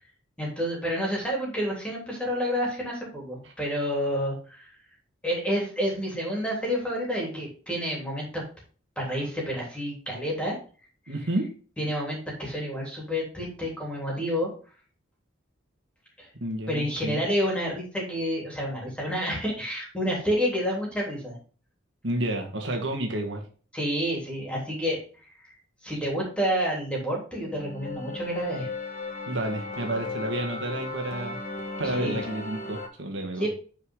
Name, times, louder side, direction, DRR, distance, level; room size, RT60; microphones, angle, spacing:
voice 1, 0.4-4.7 5.2-8.4 9.0-10.6 11.8-14.5 16.2-16.3 16.7-21.4 23.7-25.0 25.4-25.5 25.8-28.7 31.8-32.2 33.4-33.5, equal, 5° left, -2 dB, 3.3 m, -29 dB
voice 2, 11.1-11.5 16.4-17.3 22.0-23.4 29.3-31.4 31.8-33.5, right 1 dB, 65° right, 2 dB, 1.7 m, -30 dB
sound 1, 27.3-32.9, left 3 dB, 40° left, 1.4 m, -36 dB
9.4 x 4.9 x 3.8 m, 0.39 s
head